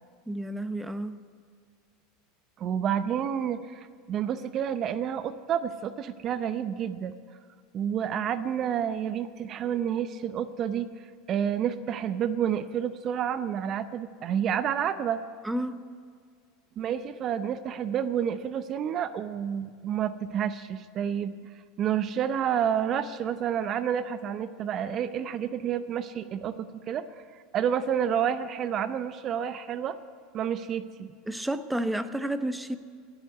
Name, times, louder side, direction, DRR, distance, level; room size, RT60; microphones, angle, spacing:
voice 1, 0.3-1.2 15.4-15.8 31.3-32.8, right 1 dB, 5° right, 12 dB, 0.8 m, -31 dB
voice 2, 2.6-7.2 7.7-15.2 16.8-21.4 21.8-26.6 26.9-27.0 27.3-30.0 30.3-31.1, right 9 dB, 45° right, 13 dB, 0.7 m, -29 dB
18.0 x 8.0 x 9.4 m, 2.1 s
hypercardioid pair, 90°, 0 cm